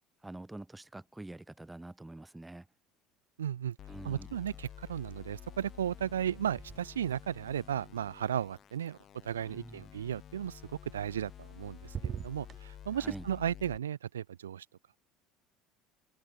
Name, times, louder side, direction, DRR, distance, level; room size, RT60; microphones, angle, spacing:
voice 1, 0.2-2.7 3.9-4.3 9.5-9.9 12.9-13.3, right 2 dB, 10° right, 1.5 m, -46 dB
voice 2, 3.4-3.8 4.0-9.0 9.2-14.7, right 10 dB, 90° right, 0.3 m, -35 dB
sound 1, 3.8-13.8, left 10 dB, 50° left, 1.1 m, -51 dB
sound 2, 4.2-4.9 5.2-9.3 10.9-11.6 11.8-12.6, right 8 dB, 40° right, 1.4 m, -46 dB
open air
hypercardioid pair, 70°, 0 cm